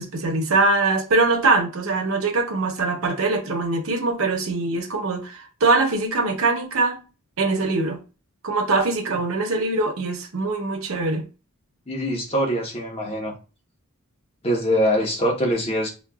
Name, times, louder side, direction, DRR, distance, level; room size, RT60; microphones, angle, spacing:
voice 1, 0.0-7.0 7.4-8.0 8.4-11.2, right 3 dB, 70° right, 0.8 m, -22 dB
voice 2, 11.9-13.3 14.4-15.9, equal, 30° left, 1.0 m, -23 dB
5.6 x 2.2 x 2.3 m
head